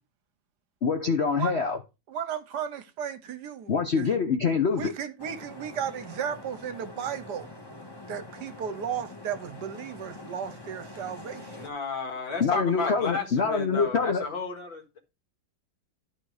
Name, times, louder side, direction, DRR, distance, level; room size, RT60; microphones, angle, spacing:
voice 1, 0.8-1.8 3.7-4.9 12.4-14.2, left 5 dB, 50° left, 0.8 m, -25 dB
voice 2, 2.1-4.1 4.8-7.5 8.1-11.6 13.7-13.9, right 8 dB, 65° right, 1.3 m, -35 dB
sound 1, 5.2-11.7, left 2 dB, 15° left, 1.2 m, -45 dB
voice 3, 11.5-15.0, left 4 dB, 80° left, 2.5 m, -33 dB
11.5 x 4.3 x 4.8 m
omnidirectional pair, 2.1 m